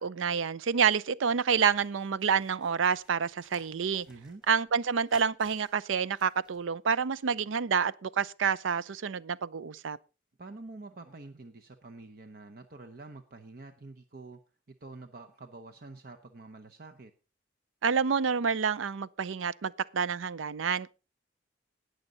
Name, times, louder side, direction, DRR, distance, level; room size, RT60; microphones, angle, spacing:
voice 1, 0.0-4.1 4.5-10.0 17.8-20.9, right 6 dB, 85° right, 0.5 m, -28 dB
sound 1, 1.5-6.7, left 1 dB, 5° right, 3.1 m, -60 dB
voice 2, 4.1-4.4 10.4-14.4 14.8-17.1, right 3 dB, 50° right, 0.8 m, -47 dB
19.0 x 6.6 x 3.9 m
head